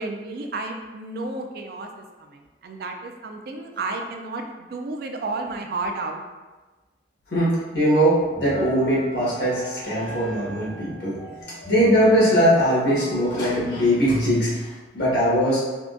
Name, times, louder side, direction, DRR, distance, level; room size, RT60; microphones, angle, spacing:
voice 1, 0.0-6.2, right 3 dB, 55° right, 3 dB, 0.3 m, -32 dB
voice 2, 7.3-11.1 11.7-15.6, equal, 70° left, -8 dB, 1.4 m, -21 dB
sound 1, 8.1-13.8, equal, 20° left, 1.5 m, -39 dB
3.6 x 2.4 x 2.5 m, 1.2 s
head